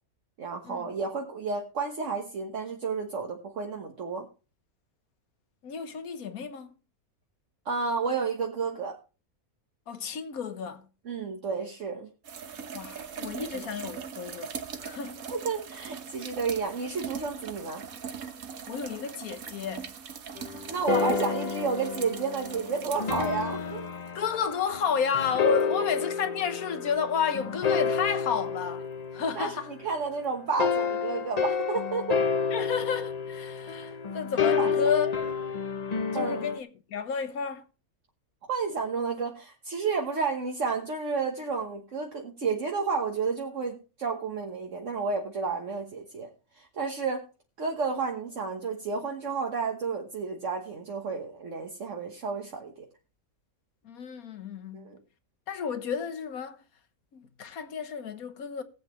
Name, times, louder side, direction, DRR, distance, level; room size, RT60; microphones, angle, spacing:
voice 1, 0.4-4.3 7.6-9.0 11.0-12.1 13.5-13.6 15.3-17.8 20.7-23.9 29.3-29.5 29.8-32.2 34.0-34.2 34.6-34.8 36.1-36.4 38.5-46.3 46.5-47.2 47.6-52.8 54.7-55.0, right 5 dB, 60° right, 1.6 m, -31 dB
voice 2, 5.6-6.7 9.9-10.9 12.7-15.2 18.7-19.9 24.1-28.9 29.1-29.7 32.5-35.3 36.1-37.7 53.8-54.9 55.5-56.6 57.1-58.6, left 6 dB, 80° left, 1.6 m, -31 dB
sound 1, 12.2-24.1 25.6-25.7 30.5-30.6, right 7 dB, 75° right, 1.6 m, -41 dB
sound 2, 20.4-30.0 30.6-36.6, left 6 dB, 40° left, 0.7 m, -30 dB
19.0 x 8.1 x 3.1 m
omnidirectional pair, 1.5 m